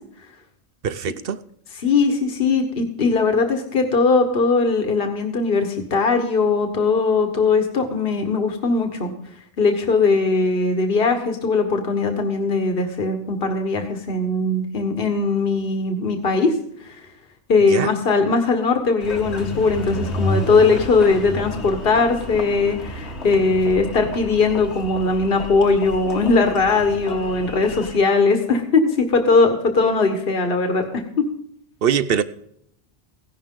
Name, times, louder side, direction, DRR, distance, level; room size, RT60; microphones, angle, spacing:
voice 1, 0.8-1.4 17.7-17.9 31.8-32.2, right 8 dB, 60° right, 0.9 m, -22 dB
voice 2, 1.8-9.1 9.6-16.5 16.8-17.0 17.5-28.8 29.1-31.0, left 4 dB, 60° left, 1.6 m, -20 dB
Engine, 19.0-28.0, left 1 dB, 80° left, 1.8 m, -31 dB
16.0 x 11.0 x 3.8 m
omnidirectional pair, 1.1 m